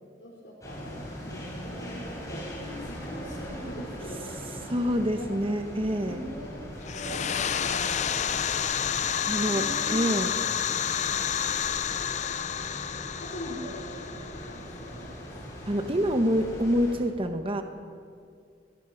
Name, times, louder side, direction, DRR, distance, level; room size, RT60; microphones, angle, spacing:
voice 1, 0.2-1.0 1.2-4.5 5.2-5.4 5.8-8.1 9.5-10.1 13.2-15.3, equal, 70° left, -5 dB, 4.5 m, -42 dB
sound 1, 0.6-16.9, equal, 20° left, 6.5 m, -41 dB
voice 2, 4.7-6.2 9.2-10.3 15.7-17.6, equal, 30° right, 6 dB, 1.1 m, -26 dB
sound 2, 6.8-15.4, left 8 dB, 40° left, 0.6 m, -30 dB
23.0 x 19.5 x 6.1 m, 2.2 s
head